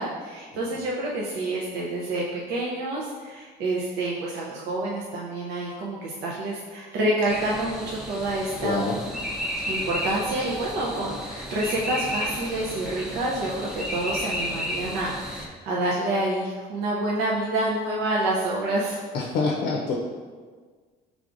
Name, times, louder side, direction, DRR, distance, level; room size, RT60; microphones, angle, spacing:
voice 1, 0.0-8.8 9.6-19.0, right 1 dB, 80° right, -4 dB, 0.6 m, -28 dB
sound 1, 7.3-15.5, equal, ahead, 0.5 m, -33 dB
voice 2, 8.6-9.0 19.1-20.0, left 3 dB, 80° left, -1 dB, 0.6 m, -26 dB
4.8 x 3.5 x 2.5 m, 1.5 s
cardioid pair, 110°, 17 cm